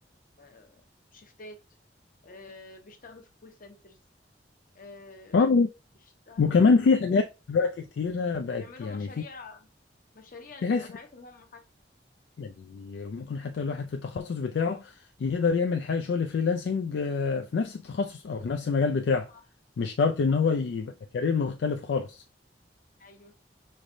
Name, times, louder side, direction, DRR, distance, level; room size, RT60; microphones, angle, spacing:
voice 1, 0.4-0.8 1.1-1.6 2.2-4.0 4.7-5.4 6.3-7.0 8.5-9.7 10.1-11.6 19.3-19.4 23.0-23.3, left 3 dB, 50° left, 0.9 m, -48 dB
voice 2, 5.3-5.7 6.4-9.1 10.6-10.9 12.4-19.3 19.8-22.2, left 4 dB, 70° left, 0.3 m, -26 dB
5.1 x 3.2 x 2.6 m
head